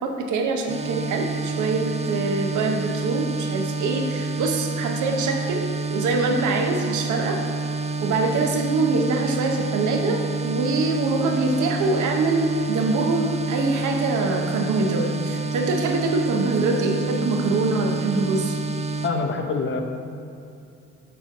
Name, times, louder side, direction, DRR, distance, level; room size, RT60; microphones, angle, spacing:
voice 1, 0.0-7.4 8.0-18.6, right 3 dB, 75° right, 3 dB, 0.9 m, -24 dB
sound 1, 0.7-19.1, right 3 dB, 20° right, 0.5 m, -28 dB
voice 2, 19.0-19.8, left 4 dB, 40° left, 4 dB, 0.7 m, -25 dB
7.0 x 3.2 x 5.9 m, 2.6 s
cardioid pair, 90°, 30 cm